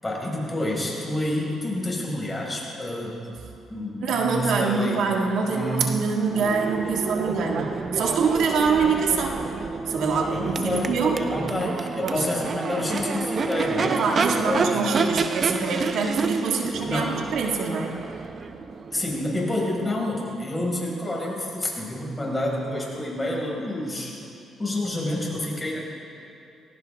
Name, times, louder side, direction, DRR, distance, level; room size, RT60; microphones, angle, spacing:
voice 1, 0.0-3.4 3.7-5.0 5.5-6.0 10.1-10.9 11.2-14.0 14.3-14.8 16.6-17.2 18.9-24.1 24.6-25.8, left 1 dB, 20° left, -3 dB, 5.2 m, -28 dB
voice 2, 4.0-9.4 9.9-11.2 12.0-12.3 13.9-18.0, right 5 dB, 75° right, 1 dB, 1.8 m, -25 dB
Crowd / Race car auto racing / Accelerating revving vroom, 6.2-20.1, right 4 dB, 45° right, 0.8 m, -29 dB
22.0 x 18.5 x 3.5 m, 2.6 s
cardioid pair, 90°, 0 cm